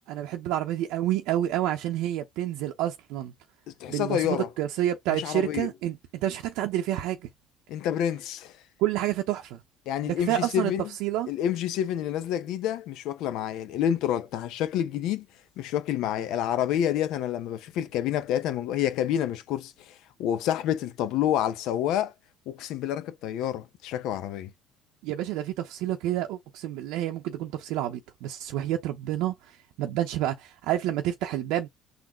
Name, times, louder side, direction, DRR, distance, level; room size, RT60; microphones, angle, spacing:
voice 1, 0.1-3.3 3.9-7.2 8.8-9.6 10.0-10.7 11.0-11.3 25.0-31.7, right 13 dB, 75° right, 0.7 m, -29 dB
voice 2, 3.8-4.5 5.1-5.7 7.7-8.5 9.9-10.8 11.3-15.2 15.6-19.9 20.2-22.1 22.5-24.5, left 10 dB, 70° left, 0.7 m, -28 dB
3.9 x 2.6 x 4.4 m
supercardioid pair, 95°, 0 cm